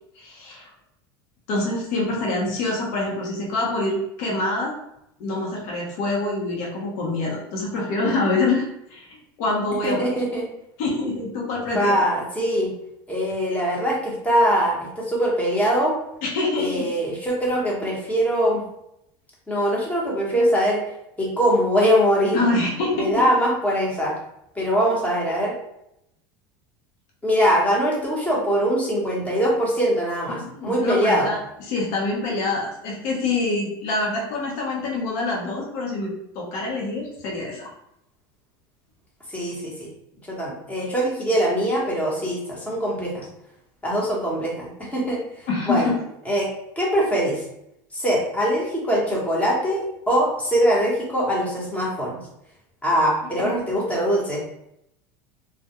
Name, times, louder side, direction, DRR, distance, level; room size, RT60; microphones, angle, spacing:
voice 1, 0.2-0.7 1.5-4.7 5.2-9.1 9.4-10.2 10.8-12.0 16.2-16.9 22.3-23.1 30.3-31.4 31.7-37.7 45.5-45.9 53.3-53.6, left 2 dB, 65° left, -2 dB, 0.8 m, -25 dB
voice 2, 9.8-10.4 11.7-12.7 13.1-15.9 16.6-18.6 19.5-20.8 21.2-22.5 22.9-24.1 24.5-25.5 27.2-31.3 39.3-39.9 40.3-43.3 43.8-45.9 46.3-46.5 46.8-47.4 47.9-52.2 52.8-54.5, equal, 10° left, -4 dB, 0.9 m, -22 dB
2.2 x 2.2 x 2.8 m, 0.80 s
supercardioid pair, 115°, 12 cm